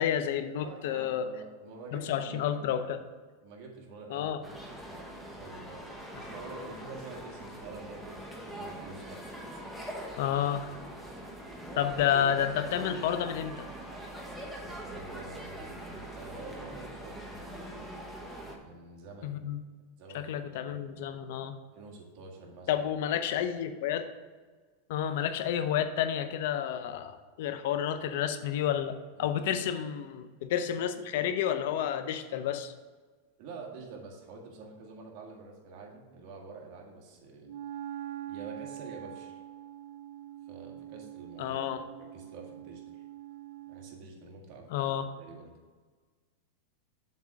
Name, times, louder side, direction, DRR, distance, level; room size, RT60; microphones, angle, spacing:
voice 1, 0.0-1.3 1.9-3.0 4.1-4.4 6.1-6.3 10.2-10.7 11.8-13.7 19.2-19.6 20.1-21.6 22.7-24.1 24.9-32.7 41.4-41.8 44.7-45.1, left 9 dB, 65° left, 9 dB, 0.7 m, -30 dB
voice 2, 0.6-2.7 3.4-5.1 5.4-9.2 11.1-11.2 14.6-17.7 18.6-19.4 20.0-20.8 21.7-22.9 29.2-29.7 33.4-37.5 38.3-39.4 40.5-41.6 42.1-43.0 43.7-45.5, right 3 dB, 45° right, 0 dB, 1.8 m, -47 dB
sound 1, 4.4-18.6, right 1 dB, ahead, 1.1 m, -42 dB
Wind instrument woodwind instrument, 37.4-44.1, right 12 dB, 70° right, 0.3 m, -44 dB
7.3 x 3.6 x 6.4 m, 1.4 s
supercardioid pair, 145°, 0 cm